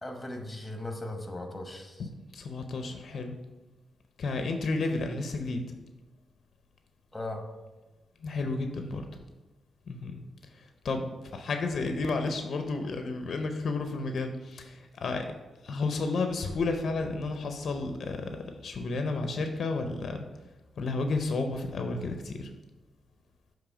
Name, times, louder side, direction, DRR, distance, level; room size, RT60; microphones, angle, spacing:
voice 1, 0.0-2.0 7.1-7.4, left 1 dB, 15° left, 3 dB, 1.0 m, -38 dB
voice 2, 2.0-3.3 4.2-5.7 8.2-9.0 9.9-10.2 10.5-15.3 15.6-18.3 18.6-20.2 20.8-22.5, left 3 dB, 60° left, 5 dB, 0.5 m, -32 dB
6.9 x 3.1 x 4.9 m, 1.1 s
cardioid pair, 95°, 0 cm